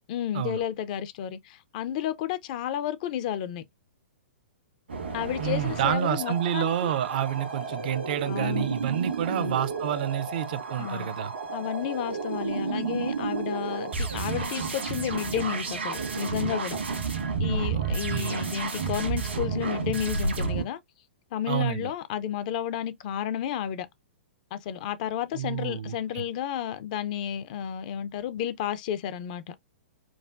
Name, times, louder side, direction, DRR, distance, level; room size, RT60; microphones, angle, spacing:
voice 1, 0.1-3.6 5.1-6.9 8.3-8.7 9.3-9.6 10.8-11.1 11.5-16.8 17.4-20.8 21.3-23.9 24.5-29.4, left 10 dB, 40° left, 0.4 m, -32 dB
sound 1, 4.9-20.6, right 4 dB, 75° right, 1.3 m, -31 dB
voice 2, 5.4-11.3 17.7-18.5 21.5-21.9 25.3-26.2, right 11 dB, 50° right, 0.4 m, -29 dB
4.6 x 2.1 x 2.4 m
figure-of-eight pair, 115°, 6 cm